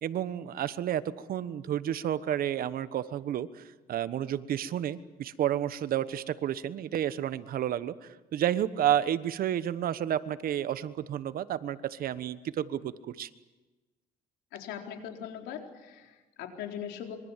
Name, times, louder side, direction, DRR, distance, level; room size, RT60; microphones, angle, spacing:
voice 1, 0.0-13.3, right 11 dB, 60° right, 14 dB, 1.2 m, -31 dB
voice 2, 14.5-17.2, left 8 dB, 85° left, 3 dB, 4.2 m, -40 dB
26.0 x 24.0 x 7.5 m, 1.2 s
cardioid pair, 110°, 17 cm